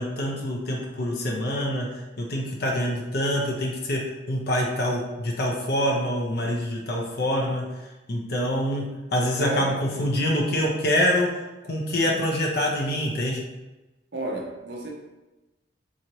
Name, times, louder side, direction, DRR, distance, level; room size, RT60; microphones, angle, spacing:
voice 1, 0.0-1.9 2.2-4.0 4.3-7.6 8.1-11.3 11.6-13.5, equal, 60° left, -1 dB, 0.7 m, -25 dB
voice 2, 9.3-9.8 14.1-14.9, right 1 dB, 70° right, -1 dB, 0.8 m, -32 dB
3.8 x 3.1 x 2.9 m, 1.1 s
head